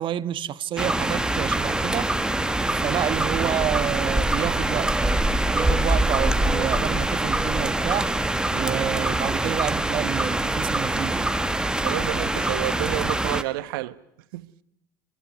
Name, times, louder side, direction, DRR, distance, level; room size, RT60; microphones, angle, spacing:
voice 1, 0.0-2.1 2.7-4.9 5.5-8.1 8.5-11.3, right 11 dB, 45° right, 1.3 m, -29 dB
sound 1, 0.8-13.4, right 1 dB, 5° right, 1.5 m, -24 dB
voice 2, 11.8-14.0 14.3-14.5, right 17 dB, 75° right, 1.2 m, -29 dB
26.0 x 19.5 x 9.5 m
hypercardioid pair, 85°, 12 cm